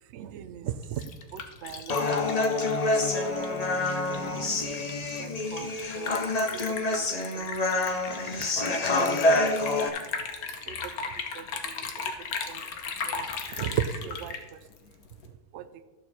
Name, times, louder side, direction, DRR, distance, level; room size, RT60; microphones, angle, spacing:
voice 1, 0.1-1.0 1.3-2.4 3.7-3.9 4.2-4.5 5.2-7.1 7.3-7.8 8.8-8.9 9.8-9.9 10.7-11.0 11.3-12.1 12.5-12.6 13.1-14.6 15.5-15.7, right 9 dB, 65° right, 12 dB, 0.7 m, -38 dB
Liquid, 0.7-15.3, left 5 dB, 70° left, 1.4 m, -37 dB
Human voice, 1.9-9.9, left 2 dB, 40° left, 0.6 m, -27 dB
13.0 x 6.7 x 4.2 m, 1.3 s
omnidirectional pair, 1.7 m